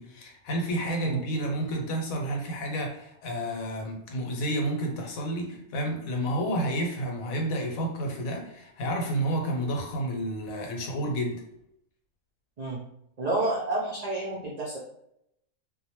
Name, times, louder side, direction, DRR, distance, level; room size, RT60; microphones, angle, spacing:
voice 1, 0.0-11.4, right 1 dB, 80° left, 1 dB, 1.1 m, -30 dB
voice 2, 13.2-14.8, right 2 dB, 70° right, -5 dB, 0.3 m, -29 dB
2.4 x 2.1 x 2.9 m, 0.76 s
omnidirectional pair, 1.4 m